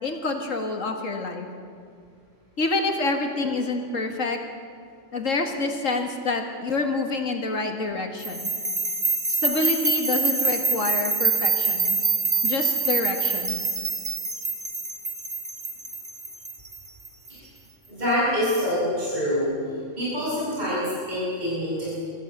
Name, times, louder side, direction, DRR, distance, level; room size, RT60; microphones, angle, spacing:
voice 1, 0.0-1.5 2.6-4.4 5.1-8.5 9.3-12.0 12.4-13.6, left 3 dB, 70° left, 4 dB, 2.2 m, -27 dB
sound 1, 8.2-17.3, right 4 dB, 55° right, 1.9 m, -26 dB
voice 2, 17.9-19.5 20.0-22.0, equal, 35° right, -8 dB, 7.1 m, -26 dB
23.0 x 14.5 x 9.2 m, 2.2 s
omnidirectional pair, 1.4 m